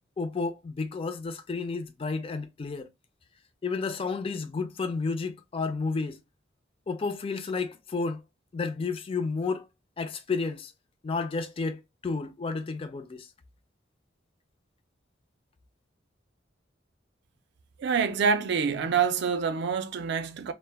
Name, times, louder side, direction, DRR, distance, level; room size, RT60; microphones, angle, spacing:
voice 1, 0.2-2.9 3.6-6.2 6.9-8.2 8.5-9.7 10.0-10.7 11.0-13.3, left 4 dB, 30° left, 0.3 m, -31 dB
voice 2, 17.8-20.5, right 6 dB, 60° right, 0.4 m, -26 dB
2.1 x 2.0 x 3.2 m
head